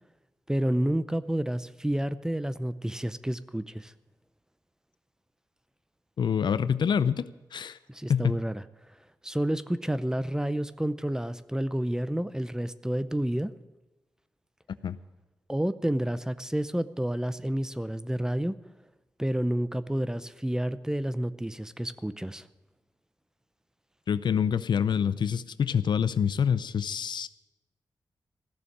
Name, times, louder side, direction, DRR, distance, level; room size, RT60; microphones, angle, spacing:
voice 1, 0.5-3.9 7.9-8.6 9.2-13.5 15.5-18.6 19.2-22.5, right 1 dB, 10° right, 14 dB, 0.6 m, -30 dB
voice 2, 6.2-7.8 8.1-8.4 14.8-15.0 24.1-27.3, left 7 dB, 80° left, 15 dB, 0.5 m, -26 dB
15.5 x 7.0 x 9.8 m, 1.1 s
wide cardioid pair, 90°, 8 cm